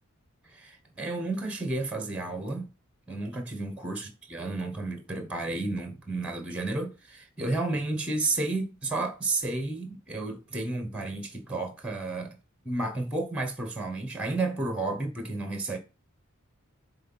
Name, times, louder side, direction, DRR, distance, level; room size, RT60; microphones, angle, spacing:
voice 1, 0.5-2.7 3.1-12.4 12.6-15.8, right 2 dB, 5° right, 1.1 m, -32 dB
6.5 x 3.9 x 5.5 m
head